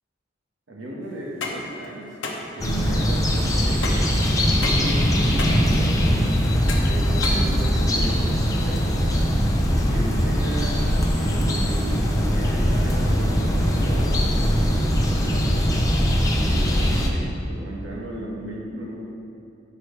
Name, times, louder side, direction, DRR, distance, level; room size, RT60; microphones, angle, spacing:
voice 1, 0.7-2.2 2.5-4.0 4.4-6.4 6.8-9.1 9.7-10.8 11.1-14.3 14.5-15.9 16.4-19.0, right 1 dB, 75° right, -3 dB, 1.4 m, -35 dB
sound 1, 1.2-8.1, left 3 dB, 75° left, 0.9 m, -34 dB
sound 2, 2.6-17.1, equal, 20° left, 0.7 m, -21 dB
11.5 x 4.8 x 3.2 m, 2.5 s
head